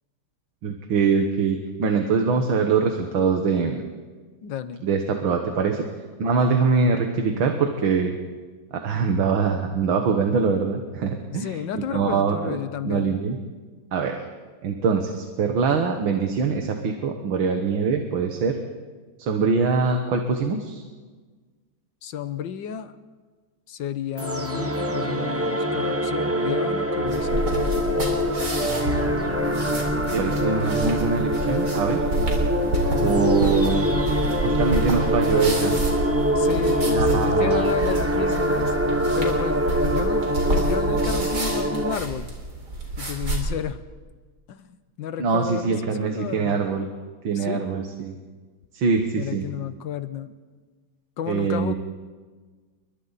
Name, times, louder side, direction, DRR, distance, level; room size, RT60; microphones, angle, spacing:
voice 1, 0.6-3.8 4.8-5.9 6.2-8.2 8.7-12.6 12.8-13.4 13.9-14.3 14.6-18.6 19.2-20.8 30.1-32.0 33.0-33.9 34.4-35.8 36.8-37.7 45.2-46.9 47.2-48.1 48.7-49.4 51.3-51.7, right 5 dB, 75° right, 4 dB, 2.2 m, -23 dB
voice 2, 4.4-4.9 11.3-13.1 22.0-22.9 23.7-27.5 33.0-33.2 36.3-38.7 39.1-42.3 43.0-43.8 44.5-46.6 47.3-47.6 49.1-50.3 51.2-51.7, left 9 dB, 65° left, 12 dB, 1.6 m, -32 dB
sound 1, 24.2-42.0, equal, 10° right, 0.8 m, -24 dB
sound 2, 24.5-35.5, left 3 dB, 85° left, 4.4 m, -34 dB
sound 3, 27.1-43.4, right 1 dB, 50° right, 4.5 m, -29 dB
30.0 x 23.5 x 4.2 m, 1.4 s
omnidirectional pair, 2.2 m